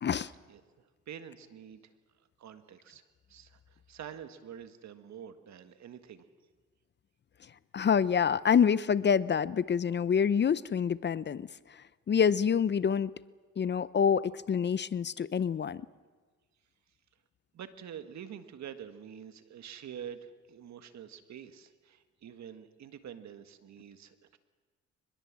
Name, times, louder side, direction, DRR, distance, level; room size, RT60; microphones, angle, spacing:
voice 1, 0.5-1.9 2.4-3.0 3.3-6.3 17.5-24.4, right 8 dB, 65° right, 10 dB, 1.8 m, -47 dB
voice 2, 7.7-11.5 11.7-13.1 13.6-15.8, left 7 dB, 35° left, 18 dB, 0.6 m, -27 dB
24.0 x 21.0 x 7.5 m, 1.4 s
cardioid pair, 90°, 30 cm